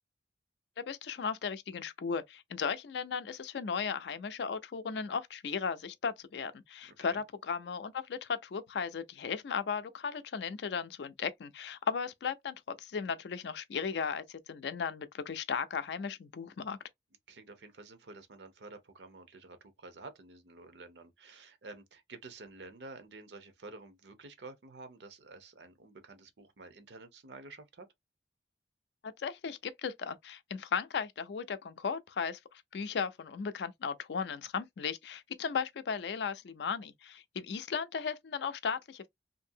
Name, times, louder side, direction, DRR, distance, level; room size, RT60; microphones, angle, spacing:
voice 1, 0.8-16.8 29.2-32.4 32.7-39.1, left 6 dB, 70° left, 0.4 m, -36 dB
voice 2, 6.8-7.2 17.3-27.9, right 3 dB, 70° right, 0.7 m, -50 dB
2.6 x 2.6 x 2.6 m
head